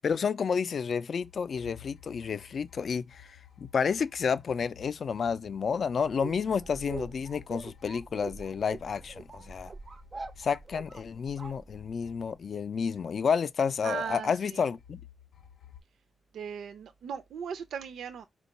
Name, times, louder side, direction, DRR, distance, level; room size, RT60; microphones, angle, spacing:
voice 1, 0.0-9.7 10.4-15.0, left 6 dB, 50° left, 0.3 m, -30 dB
sound 1, 1.1-11.4 11.7-13.6 14.8-15.8, left 11 dB, 85° left, 0.7 m, -55 dB
sound 2, 6.0-12.3, right 3 dB, 25° right, 0.4 m, -44 dB
voice 2, 13.8-14.6 16.3-18.3, right 7 dB, 90° right, 0.5 m, -38 dB
4.4 x 2.3 x 4.0 m
wide cardioid pair, 160°, 0 cm